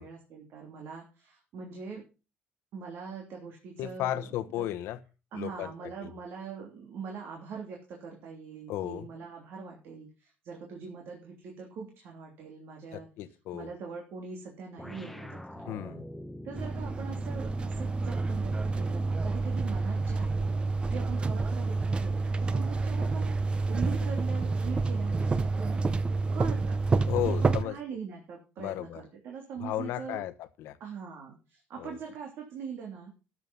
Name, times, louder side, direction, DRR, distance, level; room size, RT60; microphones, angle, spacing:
voice 1, 0.0-2.0 2.7-4.3 4.6-4.7 5.3-13.1 13.5-16.0 16.4-25.8 26.3-26.8 27.2-30.2 30.8-33.1, right 6 dB, 65° right, 1 dB, 3.0 m, -42 dB
voice 2, 3.8-5.0 5.3-6.1 8.7-9.1 12.9-13.7 15.7-16.1 27.1-27.8 28.6-29.0 29.6-30.8 31.8-31.9, left 13 dB, 80° left, 12 dB, 1.1 m, -34 dB
sound 1, 14.8-19.5, equal, 5° left, 1.0 m, -43 dB
sound 2, 16.5-27.6, right 3 dB, 25° right, 0.8 m, -29 dB
12.5 x 7.4 x 5.4 m, 0.33 s
cardioid pair, 125°, 4 cm